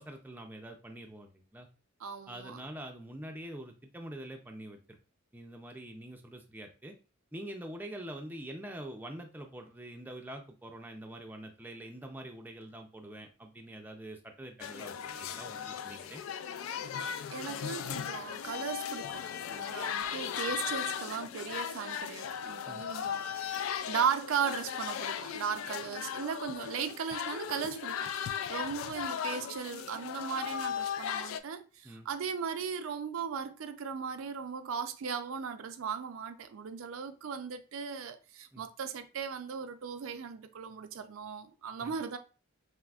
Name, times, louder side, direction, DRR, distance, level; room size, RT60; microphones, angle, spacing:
voice 1, 0.0-1.7 2.3-5.0 5.3-6.9 7.3-16.2 22.7-22.9 28.6-28.7 31.8-32.1 38.5-38.6 41.8-41.9, right 1 dB, 10° right, 0.4 m, -45 dB
voice 2, 2.0-2.6 17.3-23.6 23.9-42.2, right 6 dB, 80° right, 0.4 m, -37 dB
sound 1, 14.6-31.4, left 8 dB, 80° left, 0.3 m, -37 dB
5.7 x 2.0 x 2.4 m
head